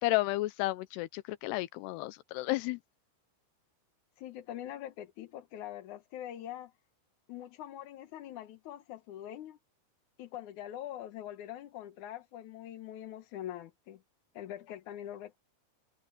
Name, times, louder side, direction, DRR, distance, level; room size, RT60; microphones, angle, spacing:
voice 1, 0.0-2.8, left 19 dB, 85° left, 2.7 m, -32 dB
voice 2, 4.2-6.7 7.3-9.6 10.2-14.0 14.3-15.4, left 12 dB, 65° left, 2.0 m, -43 dB
omnidirectional pair, 4.8 m